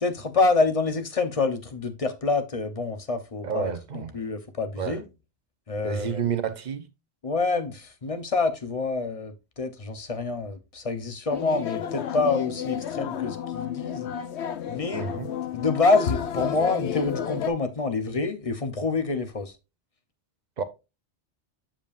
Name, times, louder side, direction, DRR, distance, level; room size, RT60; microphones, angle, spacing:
voice 1, 0.0-5.1 5.7-6.3 7.2-14.1 14.7-15.1 15.5-19.5, left 3 dB, 35° left, 0.9 m, -27 dB
voice 2, 3.4-4.2 4.8-5.0 5.8-6.9 14.9-15.3 20.6-20.7, right 7 dB, 45° right, 0.8 m, -30 dB
sound 1, 11.3-17.5, left 9 dB, 90° left, 1.0 m, -31 dB
7.4 x 6.9 x 2.5 m
omnidirectional pair, 1.1 m